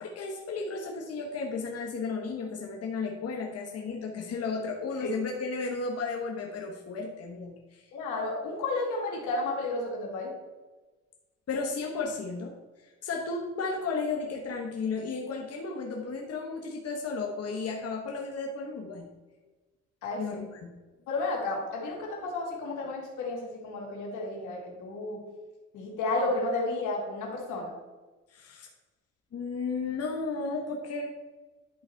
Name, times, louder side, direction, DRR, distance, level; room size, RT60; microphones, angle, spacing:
voice 1, 0.0-7.8 11.5-12.5 13.0-19.1 20.2-20.7 28.3-28.7 29.3-31.1, left 4 dB, 55° left, 0 dB, 1.2 m, -34 dB
voice 2, 7.9-10.3 20.0-20.2 21.1-25.2 25.7-27.8, left 2 dB, 90° left, -1 dB, 2.3 m, -32 dB
11.0 x 4.1 x 4.5 m, 1.3 s
cardioid pair, 90°, 30 cm